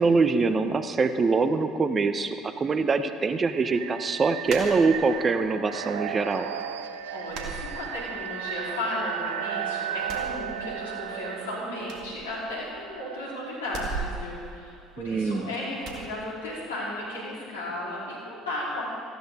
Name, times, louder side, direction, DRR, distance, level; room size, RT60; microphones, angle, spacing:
voice 1, 0.0-6.5 15.0-15.5, right 4 dB, 35° right, 10 dB, 0.9 m, -24 dB
sound 1, 3.4-14.2, right 9 dB, 75° right, 0.6 m, -36 dB
sound 2, 4.5-5.4 5.7-6.4 6.7-6.8 7.3-8.4 8.7-9.5 9.9-11.1 11.4-11.5 11.8-13.0 13.6-15.3 15.8-16.1, right 4 dB, 60° right, 2.2 m, -38 dB
voice 2, 7.1-18.8, left 1 dB, 85° left, -6 dB, 4.1 m, -34 dB
18.0 x 15.0 x 3.8 m, 2.3 s
hypercardioid pair, 60°, 0 cm